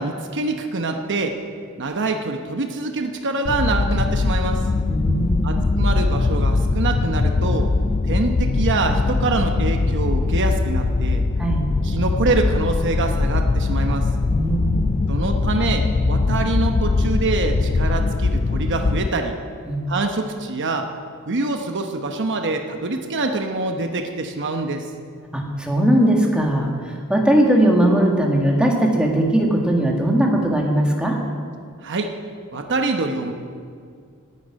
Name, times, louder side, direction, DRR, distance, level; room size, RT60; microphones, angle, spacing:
voice 1, 0.0-1.4 1.8-4.6 5.4-7.7 8.1-11.2 11.8-14.1 15.1-19.3 19.9-20.9 21.3-24.9 31.8-32.1 32.5-33.3, right 3 dB, 55° right, 5 dB, 0.9 m, -25 dB
sound 1, 3.5-19.1, left 3 dB, 30° left, 0.3 m, -21 dB
voice 2, 4.9-5.6 11.4-11.7 14.3-14.9 19.7-19.8 25.3-26.7 27.1-31.2, right 1 dB, 5° right, -1 dB, 1.8 m, -19 dB
9.9 x 9.4 x 9.9 m, 2.2 s
head